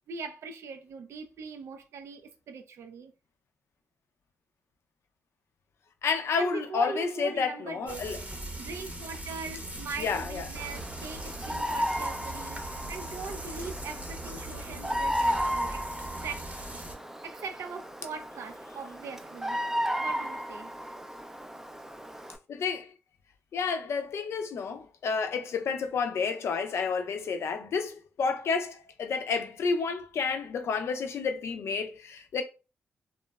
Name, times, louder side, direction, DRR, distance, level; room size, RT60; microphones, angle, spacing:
voice 1, 0.1-3.1 6.4-8.1 8.6-15.9 16.2-16.5 17.2-19.6 20.0-20.7, right 4 dB, 75° right, 0.4 m, -41 dB
voice 2, 6.0-8.2 10.0-10.5 22.5-22.9 23.5-32.4, left 5 dB, 70° left, 0.4 m, -30 dB
Frying (food), 7.9-17.0, right 1 dB, 30° right, 0.7 m, -40 dB
Bird vocalization bird call bird song, 10.5-22.4, equal, 10° right, 0.4 m, -34 dB
2.9 x 2.0 x 2.2 m
cardioid pair, 60°, 5 cm